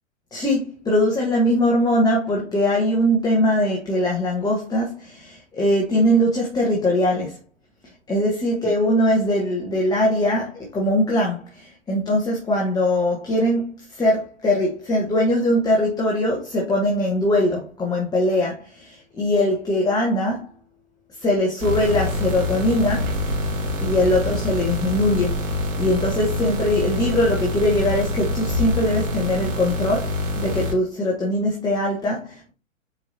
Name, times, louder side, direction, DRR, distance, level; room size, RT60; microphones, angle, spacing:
voice 1, 0.3-7.4 8.1-20.5 21.1-23.2 23.8-32.5, left 1 dB, 10° left, 1.2 m, -21 dB
sound 1, 21.6-30.7, left 1 dB, 65° right, 3.1 m, -26 dB
7.2 x 4.8 x 2.8 m
hypercardioid pair, 130°, 40 cm